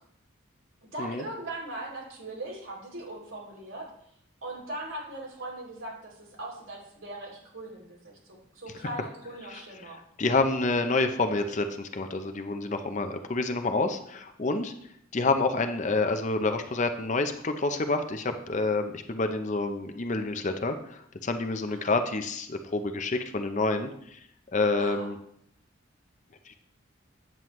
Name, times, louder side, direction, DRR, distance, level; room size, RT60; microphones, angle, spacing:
voice 1, 0.9-3.9 4.4-8.2 8.5-10.0 21.7-21.9 24.8-25.1, right 1 dB, 70° right, -2 dB, 2.8 m, -39 dB
voice 2, 10.2-14.7 15.1-24.2 24.5-25.2 26.5-26.6, left 3 dB, 35° left, 7 dB, 0.6 m, -28 dB
9.1 x 7.3 x 3.1 m, 0.72 s
head